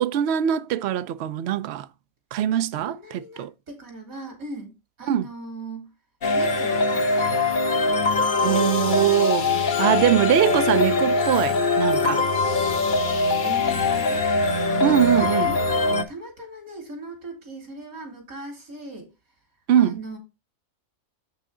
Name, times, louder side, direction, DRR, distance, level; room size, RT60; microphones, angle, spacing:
voice 1, 0.0-1.9 2.3-3.5 5.1-5.3 8.4-9.5 9.8-12.3 14.8-15.5 19.7-20.0, right 11 dB, 60° right, 0.7 m, -22 dB
voice 2, 2.8-4.7 5.0-5.9 6.3-7.4 7.8-8.3 9.5-9.8 13.4-14.2 14.6-19.1 19.8-20.2, right 2 dB, 80° right, 3.2 m, -38 dB
sound 1, 6.2-16.0, left 3 dB, 40° left, 1.0 m, -22 dB
7.9 x 6.0 x 3.7 m
omnidirectional pair, 1.4 m